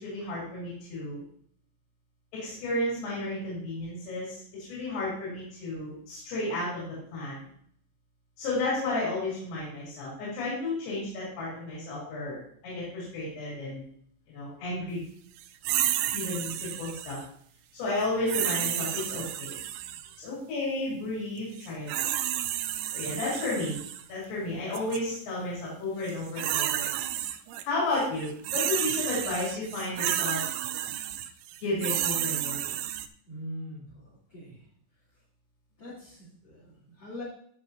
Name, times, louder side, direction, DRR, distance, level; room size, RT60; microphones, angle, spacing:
voice 1, 0.0-1.2 2.3-6.9 7.1-7.4 8.4-12.4 12.6-13.8 14.3-15.0 16.1-17.2 17.8-19.5 20.2-22.1 22.9-23.8 24.1-26.9 27.6-30.4 31.6-32.7, left 2 dB, 85° left, -6 dB, 6.4 m, -32 dB
sound 1, 15.6-17.2 18.3-20.1 21.6-24.0 24.7-25.0 26.0-27.6 27.9-33.1, right 12 dB, 85° right, 2.8 m, -31 dB
voice 2, 33.3-34.6 35.8-37.2, equal, 30° left, -7 dB, 3.1 m, -42 dB
15.5 x 6.5 x 2.8 m, 0.63 s
omnidirectional pair, 5.8 m